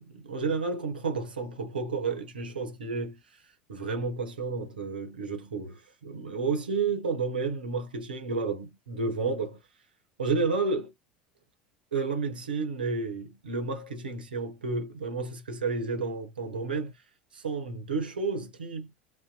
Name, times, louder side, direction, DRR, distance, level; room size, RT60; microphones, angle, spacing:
voice 1, 0.0-3.2 3.7-9.6 10.2-10.9 11.9-16.9 17.3-18.9, right 4 dB, 80° right, 0.9 m, -31 dB
2.7 x 2.1 x 2.3 m
figure-of-eight pair, 75°, 5 cm